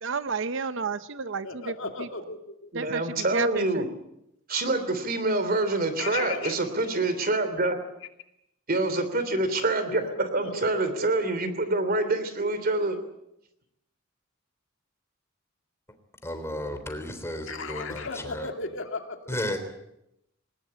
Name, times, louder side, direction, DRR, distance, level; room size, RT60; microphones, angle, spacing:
voice 1, 0.0-2.1 2.7-3.9, right 5 dB, 65° right, 13 dB, 0.8 m, -32 dB
voice 2, 1.4-2.7 6.0-6.6 7.2-7.3 9.9-11.3 17.5-19.3, left 3 dB, 65° left, 5 dB, 2.5 m, -36 dB
voice 3, 2.7-3.9 4.5-7.8 8.7-13.0, right 2 dB, 45° right, 11 dB, 3.1 m, -26 dB
voice 4, 16.2-18.5 19.3-19.6, left 1 dB, 15° left, 7 dB, 3.5 m, -33 dB
20.0 x 20.0 x 8.8 m, 0.83 s
head